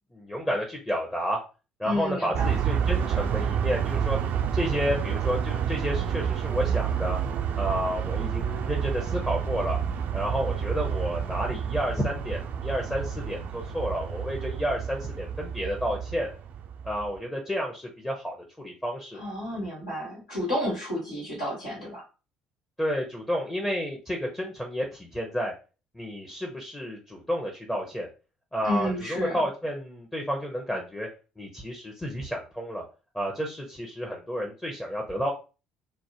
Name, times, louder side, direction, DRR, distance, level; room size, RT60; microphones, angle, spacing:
voice 1, 0.1-1.4 1.8-4.2 4.5-7.2 7.6-9.8 10.1-16.3 16.8-19.2 22.8-25.5 25.9-28.1 28.5-31.1 31.4-32.8 33.1-35.3, equal, 10° left, 0 dB, 0.6 m, -31 dB
voice 2, 1.8-2.6 19.2-22.0 28.6-29.4, left 1 dB, 80° left, -5 dB, 1.3 m, -31 dB
sound 1, 2.3-17.2, right 8 dB, 50° right, 0.4 m, -29 dB
3.0 x 2.1 x 2.7 m, 0.32 s
figure-of-eight pair, 55°, 4 cm